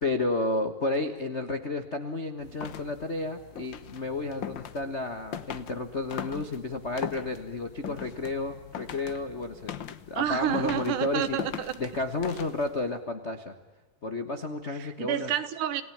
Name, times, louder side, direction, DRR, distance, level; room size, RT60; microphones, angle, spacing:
voice 1, 0.0-11.4 11.8-13.5 14.0-15.3, left 2 dB, 50° left, 0.7 m, -32 dB
sound 1, 2.4-12.9, left 9 dB, 80° left, 1.0 m, -41 dB
voice 2, 10.2-11.7 14.7-15.8, right 10 dB, 80° right, 2.9 m, -29 dB
29.0 x 18.0 x 8.7 m
omnidirectional pair, 3.7 m